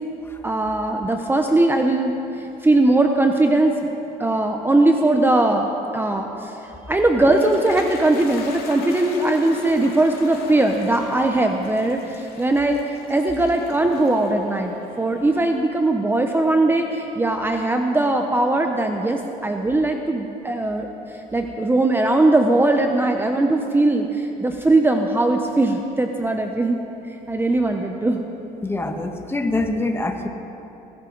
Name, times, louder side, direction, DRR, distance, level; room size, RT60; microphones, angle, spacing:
voice 1, 0.4-3.9 4.2-5.7 5.9-12.8 13.1-26.8 27.3-28.2, right 2 dB, 10° right, 4 dB, 0.8 m, -20 dB
Toilet flush, 6.9-15.8, left 4 dB, 65° left, 2.3 m, -39 dB
voice 2, 28.6-30.3, left 2 dB, 15° left, 5 dB, 1.2 m, -24 dB
20.5 x 14.0 x 4.0 m, 3.0 s
cardioid pair, 110°, 17 cm